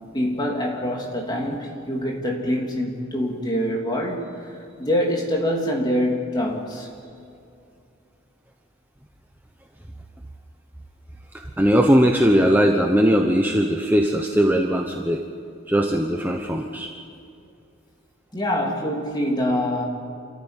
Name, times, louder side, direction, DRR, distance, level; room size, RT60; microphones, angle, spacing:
voice 1, 0.1-4.5 4.8-6.9 18.3-19.8, equal, 20° left, -1 dB, 3.2 m, -25 dB
voice 2, 11.3-15.2 15.7-16.9, equal, 10° right, 2 dB, 1.0 m, -19 dB
27.5 x 15.0 x 9.2 m, 2.6 s
head